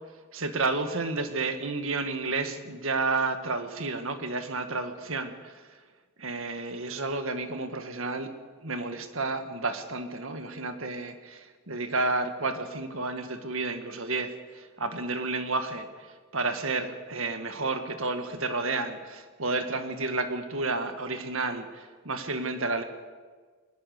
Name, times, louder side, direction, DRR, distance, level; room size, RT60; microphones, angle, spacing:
voice 1, 0.3-5.5 6.2-8.3 8.6-15.9 16.3-22.8, right 3 dB, 65° right, 7 dB, 1.8 m, -31 dB
20.5 x 20.0 x 6.7 m, 1.5 s
head